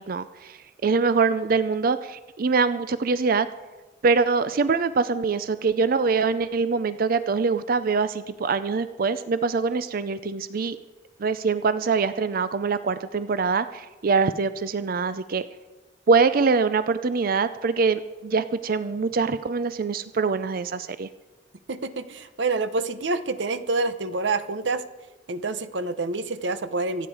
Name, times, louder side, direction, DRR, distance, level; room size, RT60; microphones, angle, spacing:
voice 1, 0.0-3.5 4.0-10.8 11.2-15.4 16.1-21.1, right 4 dB, 55° right, 12 dB, 0.5 m, -24 dB
voice 2, 21.7-24.8 25.3-27.1, right 3 dB, 90° right, 12 dB, 0.8 m, -27 dB
25.0 x 8.7 x 4.8 m, 1.2 s
head